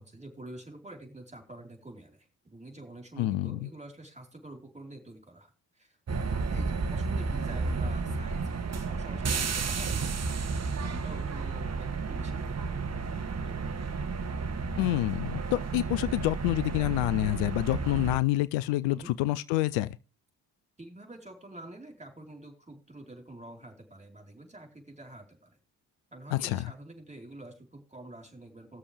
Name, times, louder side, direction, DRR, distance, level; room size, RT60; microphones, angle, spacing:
voice 1, 0.0-6.0 6.3-10.0 10.5-13.8 18.9-19.1 20.8-25.6 26.1-28.8, right 1 dB, 15° right, 4.2 m, -47 dB
voice 2, 3.2-3.7 14.8-19.9 26.3-26.7, left 17 dB, 75° left, 0.6 m, -28 dB
sound 1, 6.1-18.2, right 4 dB, 35° right, 1.2 m, -32 dB
19.5 x 7.0 x 3.4 m
hypercardioid pair, 45°, 45 cm